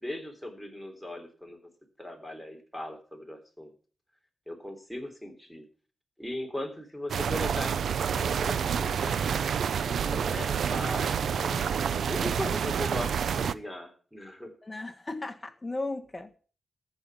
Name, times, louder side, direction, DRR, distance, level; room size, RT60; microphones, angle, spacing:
voice 1, 0.0-1.6 2.0-3.7 4.5-5.7 6.2-9.2 9.9-14.5, left 1 dB, ahead, 4 dB, 3.6 m, -39 dB
sound 1, 7.1-13.5, right 7 dB, 80° right, 0.6 m, -28 dB
voice 2, 14.6-16.4, left 2 dB, 20° left, 5 dB, 1.5 m, -36 dB
14.0 x 5.7 x 8.3 m, 0.40 s
wide cardioid pair, 120°, 0 cm